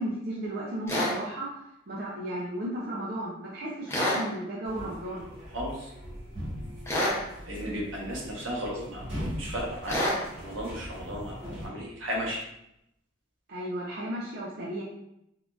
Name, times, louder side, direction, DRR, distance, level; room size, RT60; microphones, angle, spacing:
voice 1, 0.0-1.5 1.9-5.3 13.5-14.8, right 1 dB, 50° right, -5 dB, 0.5 m, -34 dB
sound 1, 0.9-1.1 3.9-4.2 6.9-7.2 9.9-10.2, left 1 dB, 15° left, 0.6 m, -26 dB
sound 2, 4.6-11.7, equal, 30° right, 1.3 m, -40 dB
voice 2, 7.5-9.1 9.4-10.0 10.4-11.3 11.6-12.4, equal, 80° right, -3 dB, 1.0 m, -34 dB
3.5 x 2.5 x 2.3 m, 0.80 s
head